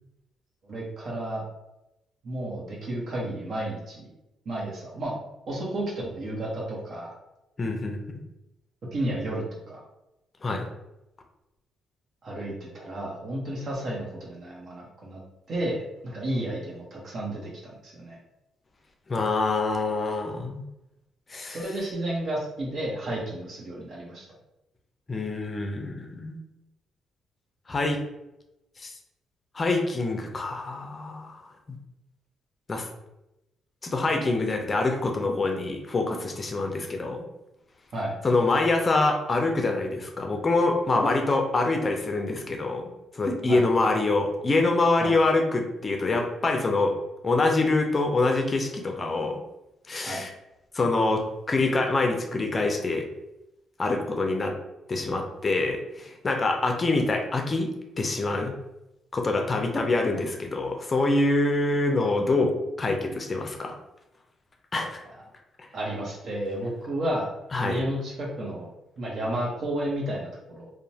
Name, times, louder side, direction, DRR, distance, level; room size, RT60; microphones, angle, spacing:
voice 1, 0.6-1.4 2.2-4.0 4.4-5.2 5.5-7.1 8.9-9.8 12.2-15.2 15.5-18.2 21.5-24.3 37.9-38.1 43.5-43.6 45.0-45.1 50.0-50.2 65.7-67.3 67.6-68.7 69.0-70.7, right 1 dB, 55° right, -3 dB, 0.9 m, -32 dB
voice 2, 7.6-8.0 10.4-10.7 19.1-20.6 21.3-21.6 25.1-26.4 27.7-28.0 28.8-28.9 29.5-31.4 31.7-31.8 32.7-32.9 33.8-37.2 38.2-46.9 47.2-49.4 49.9-50.3 50.7-53.1 53.8-54.6 54.9-57.7 58.0-58.5 59.1-63.8 64.7-65.0 65.6-65.7 67.5-67.8, left 2 dB, 30° left, 3 dB, 0.4 m, -25 dB
2.9 x 2.1 x 2.7 m, 0.92 s
cardioid pair, 90°, 0 cm